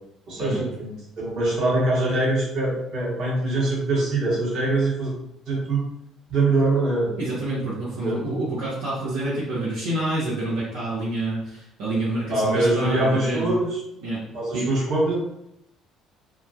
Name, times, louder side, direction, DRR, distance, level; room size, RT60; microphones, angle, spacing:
voice 1, 0.3-5.1 5.5-5.8 6.3-7.2 8.0-8.2 12.3-13.8 14.3-15.1, right 2 dB, 60° right, -5 dB, 1.3 m, -23 dB
voice 2, 7.2-13.6 14.0-14.2 14.5-14.7, right 2 dB, 80° right, -10 dB, 0.9 m, -28 dB
2.9 x 2.2 x 2.7 m, 0.79 s
hypercardioid pair, 55°, 0 cm